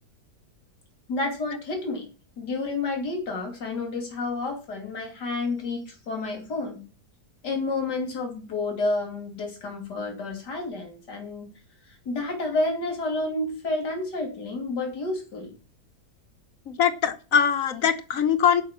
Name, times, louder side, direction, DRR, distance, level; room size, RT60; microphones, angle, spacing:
voice 1, 1.1-2.1 2.4-6.8 7.4-11.5 12.0-15.5, left 2 dB, 85° left, 2 dB, 3.4 m, -30 dB
voice 2, 16.7-18.6, left 7 dB, 55° left, 10 dB, 1.5 m, -22 dB
11.5 x 5.7 x 7.3 m, 0.34 s
omnidirectional pair, 1.8 m